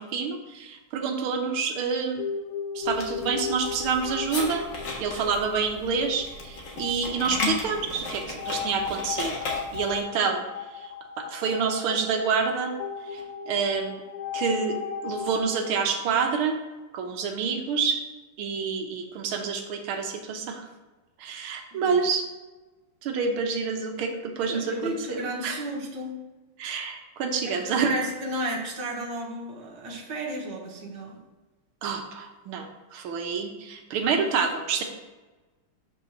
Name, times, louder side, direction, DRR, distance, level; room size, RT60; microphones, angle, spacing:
voice 1, 0.0-2.2 2.7-4.7 5.0-9.3 9.7-10.4 10.7-10.9 11.2-12.7 13.1-14.0 14.3-16.5 16.9-18.0 18.4-20.7 21.2-22.2 23.0-25.6 26.6-27.9 31.8-34.8, right 5 dB, 75° right, 4 dB, 1.7 m, -28 dB
sound 1, 2.2-15.4, left 6 dB, 85° left, 1.8 m, -36 dB
sound 2, 2.8-10.0, left 3 dB, 60° left, 1.9 m, -35 dB
voice 2, 24.5-26.2 27.4-31.2, right 1 dB, 55° right, -2 dB, 2.0 m, -33 dB
5.4 x 4.7 x 6.4 m, 1.2 s
omnidirectional pair, 2.4 m